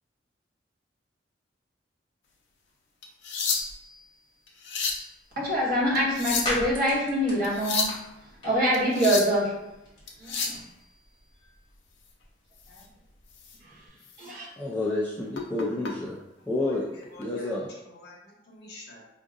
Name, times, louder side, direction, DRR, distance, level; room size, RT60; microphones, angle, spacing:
sound 1, 3.0-3.9 4.5-5.1 5.9-6.7 7.4-8.0 8.7-9.4 10.1-10.6 12.7-12.8 13.3-13.6 14.0-14.2 15.3-15.9 17.0-17.2, left 5 dB, 85° left, 0.6 m, -30 dB
sound 2, 5.2-13.9, left 1 dB, 25° left, 1.3 m, -41 dB
voice 1, 5.4-7.9 8.4-9.5 10.2-10.6 14.2-14.5, equal, 55° right, 1.3 m, -25 dB
voice 2, 14.6-16.2 16.5-16.9 17.2-17.7, left 2 dB, 10° left, 0.4 m, -29 dB
voice 3, 16.6-17.5 17.8-19.0, left 1 dB, 65° left, 0.9 m, -48 dB
4.8 x 2.5 x 2.5 m
head